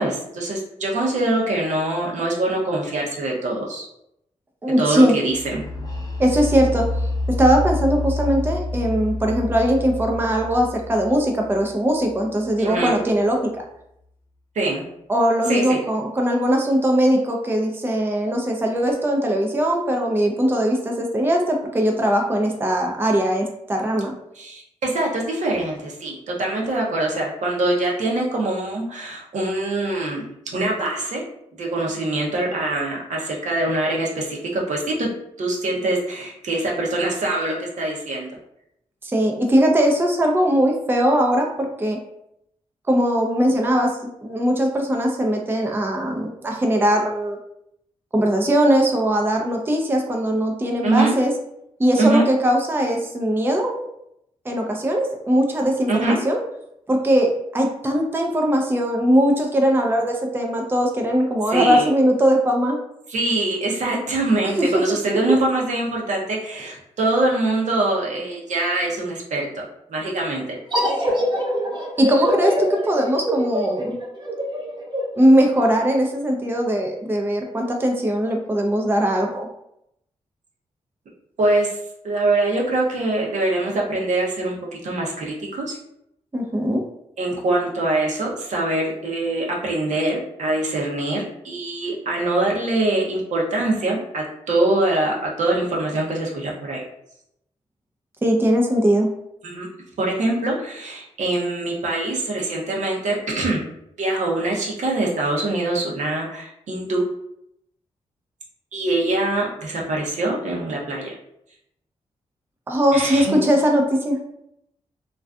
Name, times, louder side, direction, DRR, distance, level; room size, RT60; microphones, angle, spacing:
voice 1, 0.0-3.8 4.8-5.6 12.6-13.0 14.5-14.8 15.5-15.8 24.3-30.3 30.5-31.2 31.6-35.1 35.4-38.3 50.8-51.1 52.0-52.3 55.9-56.2 61.5-61.9 63.1-69.6 69.9-70.6 81.4-81.8 82.0-84.6 84.8-85.8 87.2-96.8 99.4-99.7 100.0-103.6 104.0-107.0 108.7-111.2 112.9-113.4, right 2 dB, 65° right, -2 dB, 0.7 m, -23 dB
voice 2, 4.6-5.1 6.2-6.9 7.4-13.6 15.1-24.1 39.0-42.0 42.9-43.9 44.2-47.4 48.1-51.3 51.8-53.9 54.5-56.4 56.9-62.8 64.6-64.7 65.3-65.4 72.0-74.0 75.2-79.5 86.3-86.8 98.2-99.1 112.7-114.2, equal, 15° right, 1 dB, 0.4 m, -20 dB
sound 1, 5.2-13.0, left 2 dB, 30° left, 0.6 m, -28 dB
sound 2, 70.7-76.0, equal, 35° right, 0.9 m, -24 dB
2.5 x 2.3 x 2.3 m, 0.78 s
cardioid pair, 50°, 13 cm